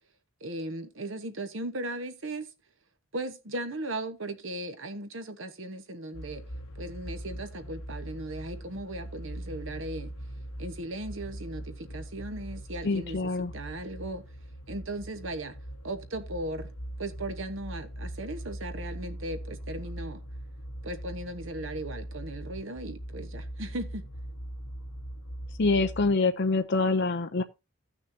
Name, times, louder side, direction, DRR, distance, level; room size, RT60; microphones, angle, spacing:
voice 1, 0.4-2.5 3.1-6.4 6.7-10.1 10.6-14.2 14.7-15.6 15.8-16.7 17.0-20.2 20.8-24.0, right 1 dB, 60° right, 1.3 m, -37 dB
sound 1, 6.1-26.1, right 1 dB, 85° left, 1.0 m, -41 dB
voice 2, 12.8-13.5 25.6-27.4, left 3 dB, 55° left, 0.6 m, -25 dB
15.5 x 6.3 x 2.8 m
head